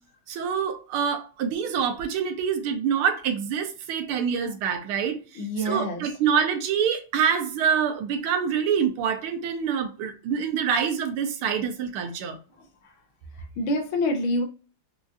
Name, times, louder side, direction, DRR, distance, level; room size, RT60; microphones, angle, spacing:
voice 1, 0.3-12.4, right 7 dB, 80° right, 1.5 m, -26 dB
voice 2, 5.4-6.0 13.6-14.4, left 1 dB, 75° left, 1.4 m, -26 dB
4.8 x 2.4 x 2.5 m
omnidirectional pair, 2.4 m